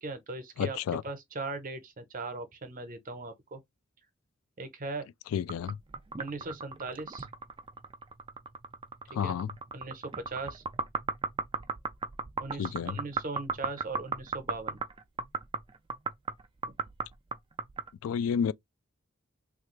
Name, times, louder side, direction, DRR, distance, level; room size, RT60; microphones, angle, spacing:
voice 1, 0.0-0.8 1.0-3.6 4.6-5.0 6.2-7.3 9.2-9.4 9.7-10.6 12.4-14.8, right 3 dB, 40° right, 0.8 m, -39 dB
voice 2, 0.6-1.0 5.3-5.8 9.1-9.5 12.6-13.0 18.0-18.5, left 7 dB, 85° left, 0.3 m, -30 dB
sound 1, 5.5-17.9, right 4 dB, 25° right, 0.4 m, -36 dB
3.3 x 2.4 x 3.1 m
head